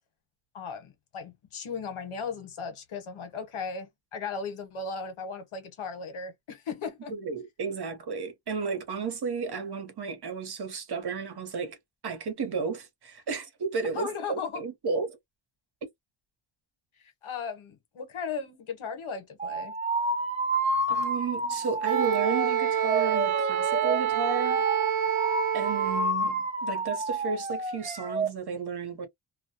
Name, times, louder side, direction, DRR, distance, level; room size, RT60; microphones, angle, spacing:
voice 1, 0.5-7.1 13.9-14.6 17.0-19.7, left 5 dB, 85° left, 1.0 m, -36 dB
voice 2, 7.1-11.8 12.0-15.2 15.8-15.9 20.9-24.6 25.5-29.1, right 5 dB, 55° right, 0.9 m, -33 dB
sound 1, 19.4-28.3, right 2 dB, 15° right, 0.5 m, -30 dB
Wind instrument woodwind instrument, 21.8-26.1, right 10 dB, 90° right, 0.6 m, -27 dB
2.2 x 2.1 x 2.7 m
wide cardioid pair, 110°, 48 cm